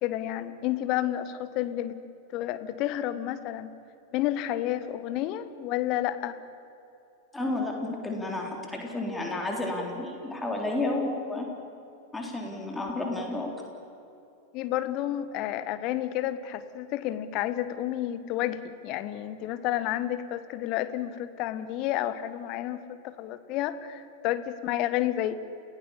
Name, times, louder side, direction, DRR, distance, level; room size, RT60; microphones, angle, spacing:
voice 1, 0.0-2.0 2.3-3.7 4.1-6.4 14.5-25.3, left 13 dB, 40° left, 12 dB, 1.3 m, -30 dB
voice 2, 7.3-11.5 12.1-13.5, left 2 dB, 10° left, 0 dB, 3.7 m, -31 dB
29.5 x 17.0 x 7.3 m, 2.8 s
figure-of-eight pair, 90°, 0 cm